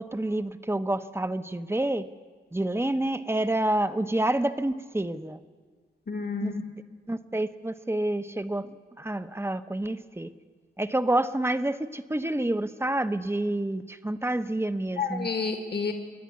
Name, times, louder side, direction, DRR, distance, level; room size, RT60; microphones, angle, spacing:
voice 1, 0.0-2.1 2.5-5.4 6.4-6.5 7.1-8.7 9.0-10.3 10.8-15.3, right 1 dB, 10° right, 10 dB, 0.9 m, -28 dB
voice 2, 6.1-6.7 15.0-15.9, left 4 dB, 55° left, 4 dB, 1.8 m, -30 dB
27.0 x 11.0 x 9.6 m, 1.5 s
wide cardioid pair, 80°, 20 cm